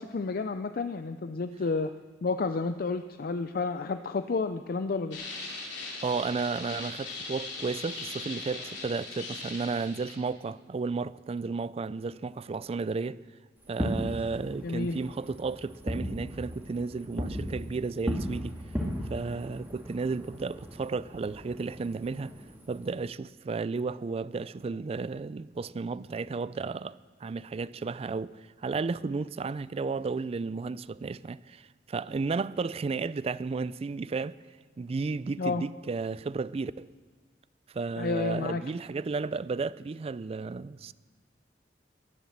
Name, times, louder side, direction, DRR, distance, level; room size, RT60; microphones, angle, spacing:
voice 1, 0.0-1.9 2.2-5.3 14.6-15.0 35.4-35.6 38.0-38.6, left 4 dB, 55° left, 0.4 m, -31 dB
sound 1, 5.1-10.1, left 3 dB, 75° left, 3.4 m, -39 dB
voice 2, 6.0-13.2 13.7-18.6 19.1-22.3 22.7-34.3 34.8-36.9 37.7-40.9, right 4 dB, 35° right, 0.3 m, -33 dB
Fireworks, 13.6-22.9, equal, 10° right, 2.2 m, -37 dB
21.5 x 7.2 x 7.3 m
head